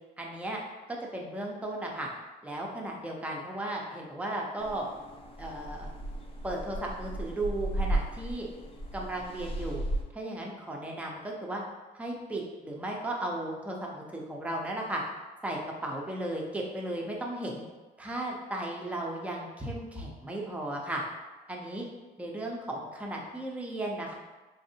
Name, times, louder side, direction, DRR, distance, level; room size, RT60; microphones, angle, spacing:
voice 1, 0.2-0.6 0.9-2.1 2.4-4.9 5.4-5.9 6.4-8.5 8.9-9.8 10.1-11.6 11.9-15.0 15.4-17.6 18.0-21.0 21.5-21.9 22.2-24.1, right 1 dB, 10° right, -2 dB, 0.6 m, -35 dB
sound 1, 4.6-10.0, right 1 dB, 35° left, 0.6 m, -35 dB
4.0 x 2.6 x 2.7 m, 1.2 s
cardioid pair, 110°, 17 cm